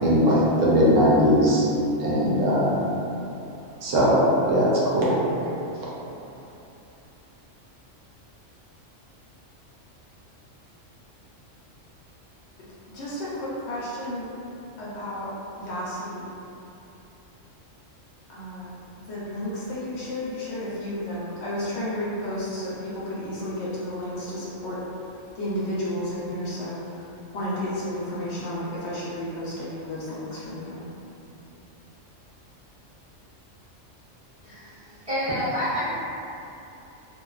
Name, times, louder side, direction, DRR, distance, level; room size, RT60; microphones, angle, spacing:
voice 1, 0.0-1.6 2.0-2.7 3.8-5.1, equal, 75° right, -6 dB, 0.9 m, -19 dB
voice 2, 12.9-14.3 14.8-15.3 15.6-16.2 18.3-18.8 19.1-24.8 25.3-26.8 27.3-30.8, left 1 dB, 65° left, -8 dB, 0.8 m, -32 dB
voice 3, 34.4-35.9, equal, 35° right, -12 dB, 0.6 m, -28 dB
2.5 x 2.2 x 2.3 m, 2.8 s
omnidirectional pair, 1.3 m